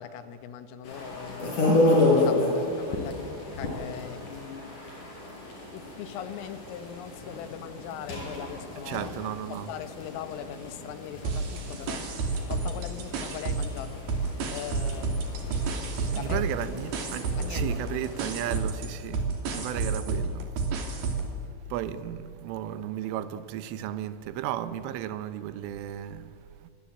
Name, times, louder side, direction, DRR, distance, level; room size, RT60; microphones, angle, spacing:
voice 1, 0.0-1.7 2.1-4.8 5.7-12.1 12.5-15.2 16.1-16.4 17.4-17.8 19.5-19.7, left 9 dB, 85° left, 4.0 m, -40 dB
sound 1, 0.8-18.6, left 2 dB, 40° left, 7.5 m, -31 dB
voice 2, 8.9-9.7 16.1-19.2 19.5-20.5 21.7-26.3, right 11 dB, 80° right, 3.5 m, -34 dB
sound 2, 11.2-13.8 14.1-21.3, right 3 dB, 55° right, 4.6 m, -30 dB
sound 3, 15.4-20.8, left 1 dB, 25° left, 3.1 m, -47 dB
26.0 x 23.5 x 8.8 m
omnidirectional pair, 5.8 m